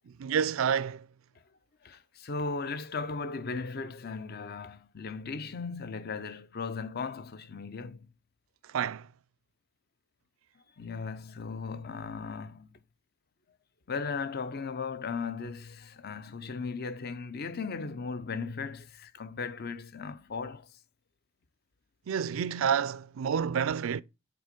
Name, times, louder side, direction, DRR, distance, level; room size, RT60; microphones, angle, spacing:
voice 1, 0.1-1.1 8.7-9.1 22.1-24.0, right 7 dB, 75° right, 0.4 m, -29 dB
voice 2, 1.8-8.1 10.8-12.8 13.9-20.7, left 4 dB, 50° left, 0.6 m, -37 dB
7.8 x 3.9 x 5.1 m
head